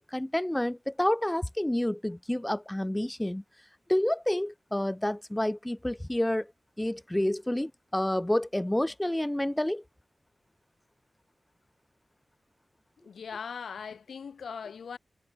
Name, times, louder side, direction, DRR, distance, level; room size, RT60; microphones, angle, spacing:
voice 1, 0.0-3.4 3.9-6.5 6.8-9.8, left 1 dB, 10° left, 0.3 m, -29 dB
voice 2, 13.0-15.0, left 6 dB, 90° left, 1.0 m, -40 dB
wide cardioid pair, 135°, 0 cm